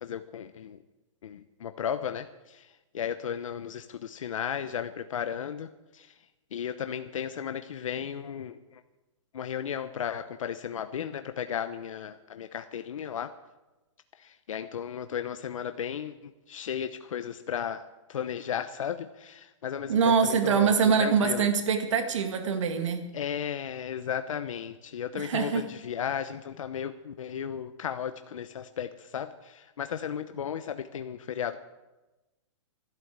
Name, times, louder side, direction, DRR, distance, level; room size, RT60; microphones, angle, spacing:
voice 1, 0.0-0.8 1.2-2.7 2.9-6.1 6.5-8.8 9.3-13.3 14.2-21.5 23.1-31.6, left 8 dB, 85° left, 9 dB, 0.9 m, -35 dB
voice 2, 19.9-23.0 25.1-25.6, right 6 dB, 70° right, 6 dB, 2.0 m, -24 dB
12.5 x 12.0 x 8.0 m, 1.1 s
hypercardioid pair, 165°, 16 cm